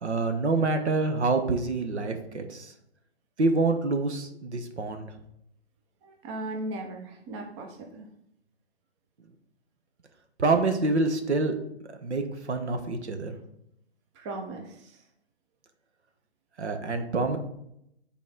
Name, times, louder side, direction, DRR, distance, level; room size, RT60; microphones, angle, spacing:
voice 1, 0.0-2.7 3.4-5.1 10.4-11.6 12.0-13.3 16.6-17.4, right 3 dB, 75° right, 6 dB, 1.1 m, -26 dB
voice 2, 6.0-8.1 14.1-15.0, right 2 dB, 25° right, 2 dB, 0.9 m, -37 dB
8.3 x 4.2 x 3.7 m, 0.76 s
hypercardioid pair, 135°, 34 cm